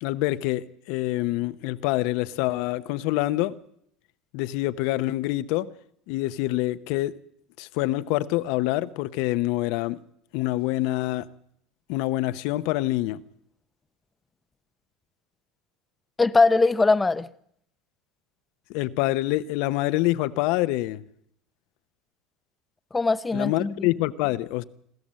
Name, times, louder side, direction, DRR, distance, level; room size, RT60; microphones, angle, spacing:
voice 1, 0.0-3.5 4.3-5.7 6.1-7.1 7.6-10.0 10.3-11.3 11.9-13.2 18.7-21.0 23.3-24.6, left 17 dB, 70° left, 0.8 m, -26 dB
voice 2, 16.2-17.3 22.9-23.9, left 3 dB, 15° left, 0.7 m, -21 dB
26.5 x 13.5 x 7.6 m
supercardioid pair, 105°, 0 cm